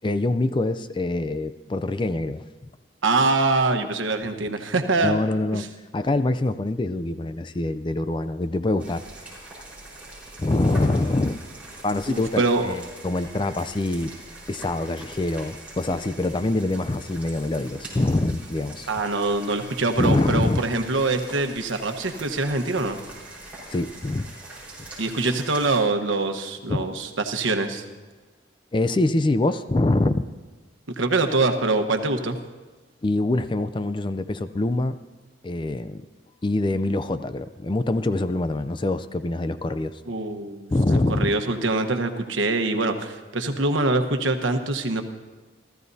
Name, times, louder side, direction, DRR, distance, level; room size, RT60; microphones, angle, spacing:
voice 1, 0.0-2.4 5.0-5.7 5.9-9.0 10.4-11.4 11.8-14.1 14.5-18.9 20.0-20.6 23.7-24.3 26.7-26.8 28.7-30.3 33.0-35.0 35.4-36.1 36.4-40.0 40.7-41.3, left 2 dB, 25° left, 12 dB, 0.4 m, -24 dB
voice 2, 3.0-5.2 5.5-5.7 12.1-12.8 18.9-23.0 25.0-27.8 30.9-32.4 40.1-45.0, right 3 dB, 85° right, 6 dB, 1.2 m, -24 dB
sound 1, 8.8-25.8, right 2 dB, 5° right, 4.5 m, -43 dB
29.0 x 14.0 x 2.7 m, 1.3 s
head